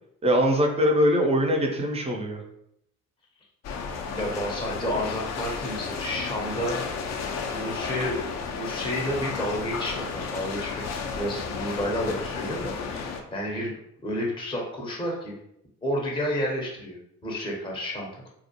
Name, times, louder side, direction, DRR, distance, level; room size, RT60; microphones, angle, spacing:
voice 1, 0.2-2.4, equal, 15° right, 2 dB, 0.5 m, -22 dB
sound 1, 3.6-13.2, left 5 dB, 40° left, 0.5 m, -33 dB
voice 2, 4.1-6.8 7.5-10.7 11.1-13.8 14.0-15.4 15.8-18.2, equal, 10° left, -1 dB, 0.7 m, -31 dB
2.3 x 2.0 x 2.9 m, 0.76 s
figure-of-eight pair, 50°, 42 cm